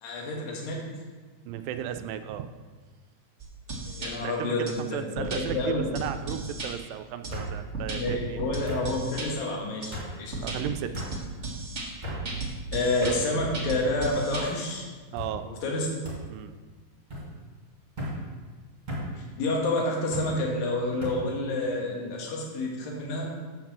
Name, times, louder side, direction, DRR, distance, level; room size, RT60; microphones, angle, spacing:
voice 1, 0.0-0.8 4.0-4.8 5.2-5.3 5.5-5.9 7.9-10.3 12.7-14.9 15.4-15.9 19.2-23.3, left 2 dB, 85° left, -2 dB, 3.3 m, -29 dB
voice 2, 1.5-2.5 4.2-8.4 10.3-11.0 15.1-15.5 16.3-16.5, right 10 dB, 85° right, 9 dB, 2.2 m, -35 dB
sound 1, 3.4-4.1 4.7-4.8 5.2-5.6 5.9-6.7 7.2-9.3 9.8-9.9 10.3-14.4, right 3 dB, 50° right, 0.8 m, -35 dB
Wood Table Hit - w and wo cup - BU on R, 3.8-4.2 4.6-5.2 6.2-6.3 7.3-7.5 8.7-8.9 9.9-10.1 10.9-11.1 12.0-12.2 13.0-13.2 13.9-14.4 15.2-15.3 16.0-16.2 17.1-17.3 18.0-18.2 18.9-19.1 20.1-20.3 21.0-21.2, equal, 15° right, 2.5 m, -36 dB
7.9 x 6.0 x 7.3 m, 1.4 s
omnidirectional pair, 4.0 m